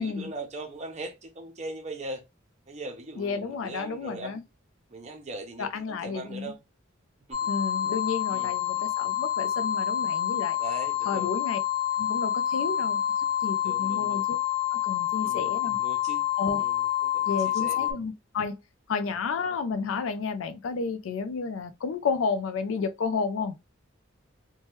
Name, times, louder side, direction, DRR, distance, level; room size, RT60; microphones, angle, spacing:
voice 1, 0.0-2.2 2.7-4.4 4.9-6.6 7.3-7.4 8.3-8.5 10.6-11.3 13.6-14.2 15.2-16.3 16.6-17.9 19.0-19.1, right 2 dB, 35° right, 0.7 m, -40 dB
voice 2, 3.2-4.4 5.6-6.5 7.5-10.6 11.0-11.6 12.0-13.0 13.4-14.4 14.7-15.8 16.4-16.6 17.3-18.6 18.9-23.5, left 5 dB, 70° left, 0.4 m, -31 dB
sound 1, 7.3-17.9, left 11 dB, 20° left, 0.7 m, -28 dB
2.9 x 2.2 x 3.0 m
head